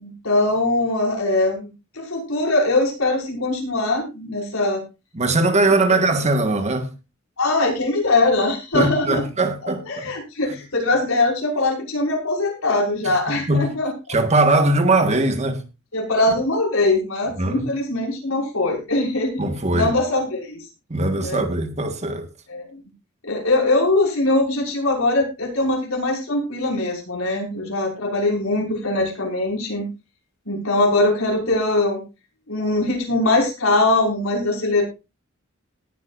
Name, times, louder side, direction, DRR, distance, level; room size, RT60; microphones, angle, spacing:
voice 1, 0.0-1.7 2.0-4.8 5.9-6.0 7.4-9.2 9.6-13.9 15.9-20.6 21.2-21.4 22.5-22.6 23.2-29.9 30.5-32.0 32.5-34.8, left 2 dB, 80° left, 6.0 m, -21 dB
voice 2, 5.1-6.9 8.7-10.1 13.0-13.1 13.5-13.7 14.1-15.6 17.4-17.7 19.4-19.9 20.9-22.3, right 2 dB, 35° right, 1.6 m, -20 dB
19.0 x 9.4 x 2.6 m
head